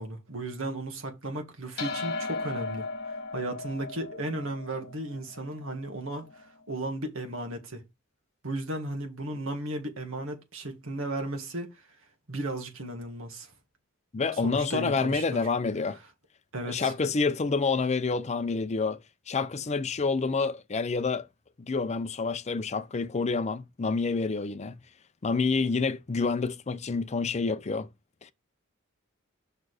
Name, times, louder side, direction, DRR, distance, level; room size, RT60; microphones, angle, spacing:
voice 1, 0.0-2.9 3.3-7.8 8.4-11.7 12.3-13.5 14.3-15.5 16.5-16.9, right 1 dB, 70° right, 1.7 m, -35 dB
sound 1, 1.8-6.4, left 3 dB, 55° left, 1.7 m, -37 dB
voice 2, 14.1-16.0 16.7-19.0 19.3-21.3 21.6-24.7 25.2-27.9 28.2-28.3, left 4 dB, 30° left, 0.5 m, -28 dB
6.0 x 4.4 x 4.9 m
head